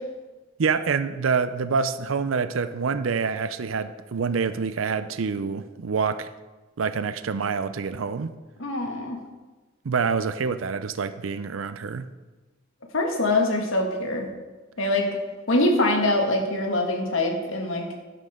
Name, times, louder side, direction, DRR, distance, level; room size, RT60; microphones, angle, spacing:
voice 1, 0.6-6.3 6.8-8.3 9.8-12.1, right 5 dB, 75° right, 0.5 m, -26 dB
voice 2, 8.6-9.2 12.9-14.3 14.8-15.1 15.5-17.8, left 2 dB, 75° left, 1.9 m, -23 dB
11.5 x 11.0 x 3.7 m
head